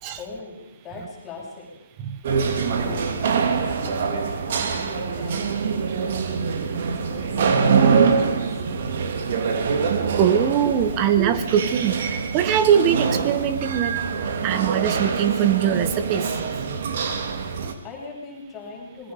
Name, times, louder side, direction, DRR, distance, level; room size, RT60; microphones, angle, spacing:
voice 1, 0.2-1.7 2.7-6.7 7.1-8.6 17.6-19.1, left 3 dB, 15° left, -3 dB, 7.9 m, -41 dB
sound 1, 2.2-17.7, right 5 dB, 45° right, 3.0 m, -24 dB
voice 2, 10.2-12.0 12.3-13.9 14.4-16.8, right 9 dB, 25° right, 10 dB, 2.0 m, -22 dB
27.0 x 22.0 x 5.3 m, 0.90 s
figure-of-eight pair, 135°, 0 cm